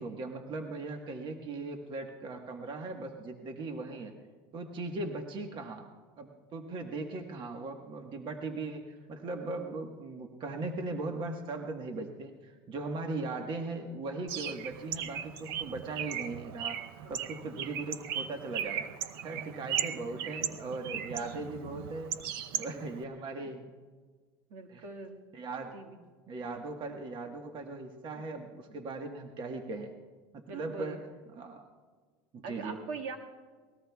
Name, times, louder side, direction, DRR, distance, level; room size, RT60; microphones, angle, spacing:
voice 1, 0.0-4.1 4.5-5.9 6.2-16.8 17.1-18.9 19.2-22.1 22.6-23.7 24.7-24.8 25.3-25.8 26.3-29.9 30.3-31.0 31.3-31.7 32.3-32.8, right 3 dB, 40° right, 4 dB, 1.4 m, -39 dB
Bird, 14.3-23.0, right 9 dB, 85° right, 0.7 m, -37 dB
voice 2, 24.5-25.2 25.7-26.0 30.5-31.0 32.4-33.2, right 4 dB, 70° right, 3 dB, 1.8 m, -42 dB
23.5 x 19.5 x 2.3 m, 1.5 s
supercardioid pair, 115°, 12 cm